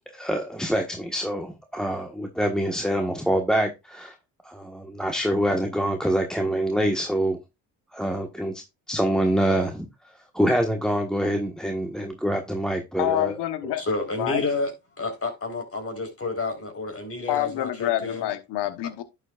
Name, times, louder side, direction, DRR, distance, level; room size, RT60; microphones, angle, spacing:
voice 1, 0.1-4.1 4.4-7.4 7.9-8.6 8.9-9.9 10.3-13.3, equal, ahead, 1.5 m, -25 dB
voice 2, 13.0-13.9 14.1-14.4 17.3-19.0, left 13 dB, 80° left, 1.2 m, -27 dB
voice 3, 13.8-14.7 15.0-18.3, left 3 dB, 35° left, 4.4 m, -30 dB
11.0 x 7.3 x 2.5 m
supercardioid pair, 60°, 41 cm